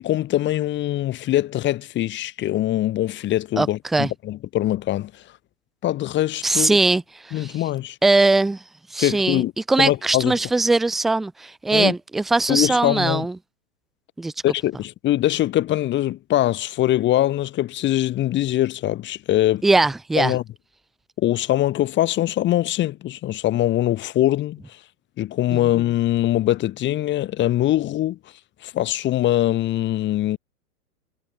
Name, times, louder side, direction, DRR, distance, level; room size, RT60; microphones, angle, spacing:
voice 1, 0.0-5.1 5.8-6.8 7.3-8.0 9.0-9.5 9.8-10.3 11.7-11.9 12.5-13.3 14.4-19.6 20.2-20.4 21.2-24.6 25.2-28.2 28.6-30.4, left 14 dB, 25° left, 2.4 m, -22 dB
voice 2, 3.5-4.1 6.4-7.6 8.0-8.6 8.9-13.4 14.2-14.3 19.6-20.3 25.5-25.7, right 2 dB, ahead, 0.3 m, -21 dB
figure-of-eight pair, 110°, 46 cm